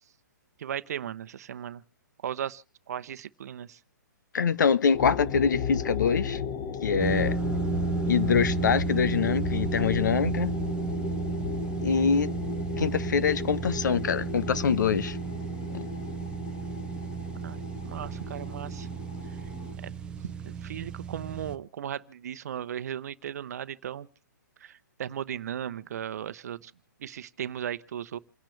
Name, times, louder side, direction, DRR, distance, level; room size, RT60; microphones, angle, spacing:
voice 1, 0.6-1.8 2.2-3.8 17.4-18.9 19.8-19.9 20.4-24.1 24.6-26.7 27.0-28.2, right 9 dB, 55° right, 0.8 m, -36 dB
voice 2, 4.3-6.4 6.8-7.4 8.1-10.6 11.8-12.3 12.8-15.2 15.7-15.8, left 6 dB, 70° left, 1.0 m, -25 dB
sound 1, 4.9-19.7, left 7 dB, 25° left, 1.1 m, -35 dB
sound 2, 7.0-21.6, right 6 dB, 10° right, 0.6 m, -33 dB
28.5 x 10.5 x 3.3 m
hypercardioid pair, 155°, 10 cm